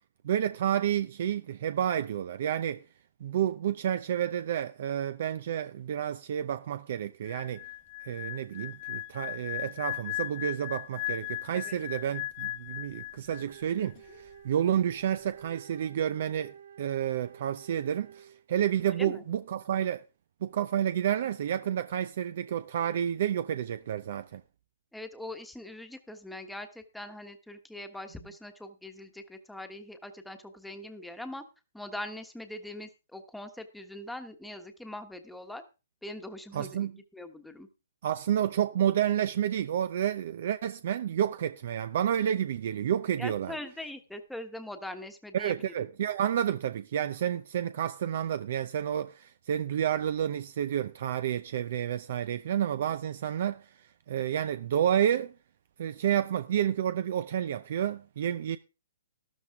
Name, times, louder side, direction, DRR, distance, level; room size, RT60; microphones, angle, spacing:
voice 1, 0.2-2.8 3.2-7.6 8.0-20.0 20.4-24.4 36.5-37.0 38.0-43.6 45.3-55.3 55.8-58.6, right 10 dB, 55° right, 0.6 m, -30 dB
sound 1, 7.2-13.6 13.9-14.2, left 18 dB, 30° left, 0.6 m, -37 dB
Wind instrument woodwind instrument, 13.2-18.4, right 8 dB, 85° right, 3.8 m, -52 dB
voice 2, 24.9-31.4 31.7-35.6 36.0-36.8 37.1-37.7 43.2-45.5, left 1 dB, ahead, 1.3 m, -42 dB
13.0 x 12.5 x 3.6 m
hypercardioid pair, 155°, 0 cm